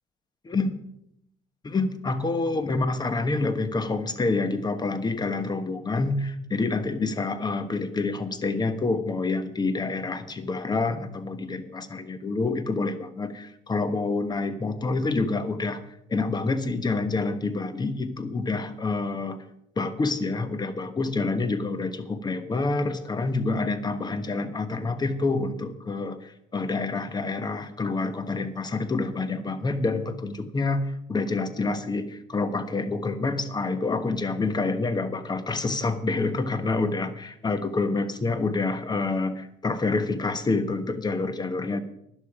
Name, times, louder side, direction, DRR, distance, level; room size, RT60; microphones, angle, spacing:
voice 1, 0.4-0.8 1.6-15.8 16.1-19.4 19.8-41.8, left 3 dB, 25° left, 11 dB, 1.2 m, -27 dB
12.0 x 11.0 x 5.0 m, 0.76 s
cardioid pair, 110°, 17 cm